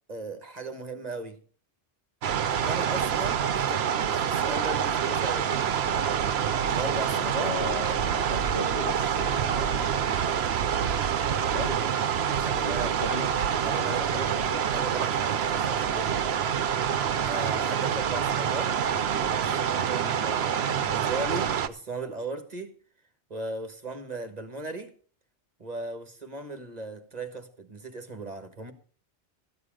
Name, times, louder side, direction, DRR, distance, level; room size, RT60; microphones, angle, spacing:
voice 1, 0.1-1.4 2.5-3.9 4.2-5.9 6.6-7.5 12.2-12.9 13.6-14.2 14.7-16.4 17.3-18.7 19.4-22.7 23.3-24.9 25.6-28.7, right 3 dB, 35° right, 1.4 m, -37 dB
sound 1, 2.2-21.7, right 8 dB, 65° right, 0.9 m, -27 dB
voice 2, 7.2-10.2 11.2-11.9 12.4-13.5 13.8-14.7, left 2 dB, 70° left, 2.1 m, -37 dB
14.0 x 9.6 x 5.0 m
omnidirectional pair, 1.2 m